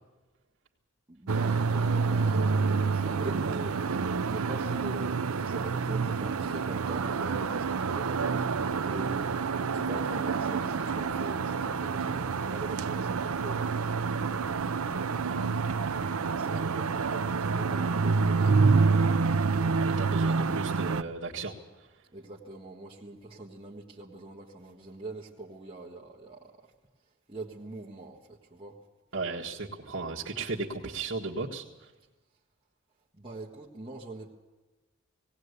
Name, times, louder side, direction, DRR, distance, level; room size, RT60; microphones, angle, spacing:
voice 1, 1.1-14.8 16.3-19.1 22.1-26.7 27.0-28.8 33.1-34.3, right 2 dB, 25° right, -4 dB, 1.6 m, -43 dB
sound 1, 1.3-21.0, right 4 dB, 90° right, 0.6 m, -28 dB
voice 2, 19.8-21.9 29.1-31.9, right 3 dB, 60° right, -5 dB, 1.7 m, -36 dB
18.5 x 18.5 x 8.2 m, 1.1 s
head